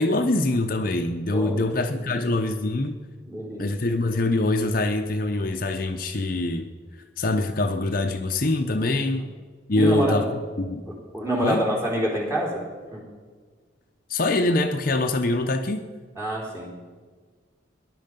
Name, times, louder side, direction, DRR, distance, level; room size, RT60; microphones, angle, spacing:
voice 1, 0.0-3.0 3.6-6.7 7.2-9.3 9.7-10.2 10.6-10.9 11.4-11.6 14.1-15.8, left 2 dB, 50° left, 5 dB, 0.7 m, -24 dB
voice 2, 3.3-3.6 9.7-10.2 10.9-12.6 12.9-13.1 16.2-16.7, right 1 dB, 15° right, -2 dB, 3.8 m, -27 dB
18.5 x 11.0 x 5.3 m, 1.5 s
head